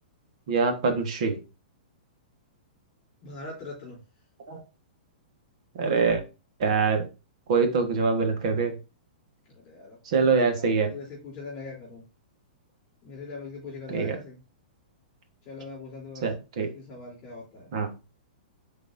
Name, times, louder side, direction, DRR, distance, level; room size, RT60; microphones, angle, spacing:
voice 1, 0.5-1.4 4.5-4.6 5.8-6.2 6.6-7.0 7.5-8.7 10.0-10.9 13.9-14.2 16.2-16.7 17.7-17.9, right 4 dB, 40° right, 5 dB, 1.4 m, -24 dB
voice 2, 3.2-4.0 9.5-10.0 10.6-12.0 13.0-14.4 15.4-16.2 16.7-17.7, left 3 dB, 25° left, -4 dB, 3.3 m, -41 dB
9.1 x 4.0 x 2.6 m, 0.30 s
hypercardioid pair, 180°, 5 cm